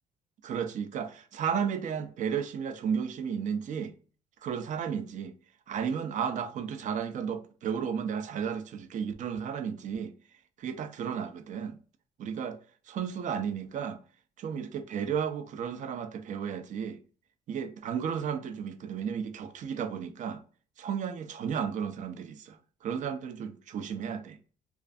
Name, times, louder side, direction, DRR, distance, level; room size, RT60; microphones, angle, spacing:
voice 1, 0.4-3.9 4.4-5.3 5.7-10.1 10.6-11.8 12.2-12.6 12.9-14.0 14.4-17.0 17.5-20.4 20.8-22.6 22.8-24.4, right 7 dB, 50° right, 0.4 m, -33 dB
2.4 x 2.3 x 2.4 m
cardioid pair, 110°, 17 cm